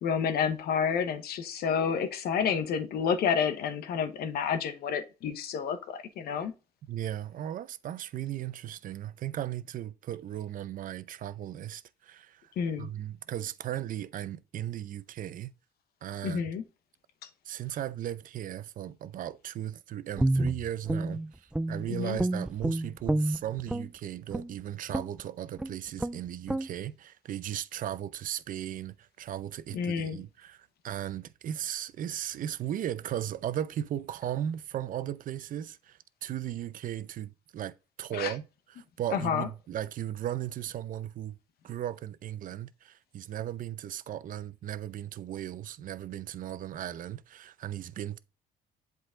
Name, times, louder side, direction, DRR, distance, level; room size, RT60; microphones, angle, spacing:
voice 1, 0.0-6.5 12.6-12.9 16.2-16.6 17.2-17.3 21.9-22.2 29.7-30.2 38.1-38.3 39.1-39.5, left 7 dB, 65° left, 1.1 m, -29 dB
voice 2, 6.9-12.5 12.8-15.5 16.0-16.4 17.4-38.4 38.8-41.4 41.6-48.2, right 11 dB, 55° right, 0.6 m, -36 dB
Guitar, 20.2-21.9 22.2-23.9 24.3-24.5 24.9-25.2 25.6-25.7 26.0-26.2 26.5-26.7, right 1 dB, 5° right, 0.3 m, -29 dB
8.0 x 4.0 x 3.8 m
cardioid pair, 110°, 17 cm